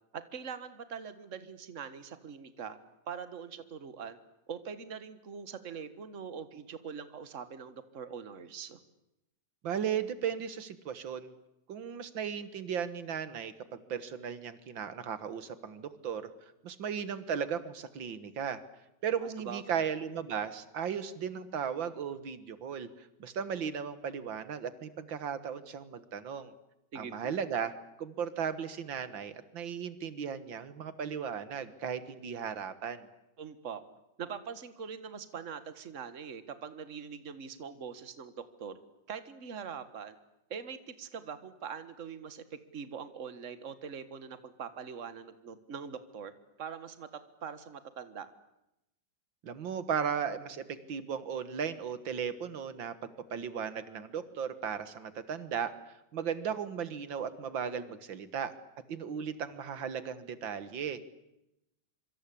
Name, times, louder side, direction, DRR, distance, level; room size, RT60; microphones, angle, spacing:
voice 1, 0.1-2.8 3.1-4.2 4.5-8.8 19.2-19.9 26.9-27.4 33.4-33.8 34.2-38.3 38.6-38.8 39.1-40.2 40.5-46.3 46.6-47.1 47.4-48.3, right 6 dB, 45° right, 12 dB, 1.8 m, -43 dB
voice 2, 9.6-11.3 11.7-16.3 16.6-18.6 19.0-26.5 27.0-27.7 28.0-33.1 49.4-50.6 50.9-55.7 56.1-58.5 58.9-61.0, right 7 dB, 85° right, 13 dB, 2.2 m, -36 dB
26.0 x 24.5 x 8.6 m, 0.87 s
omnidirectional pair, 2.0 m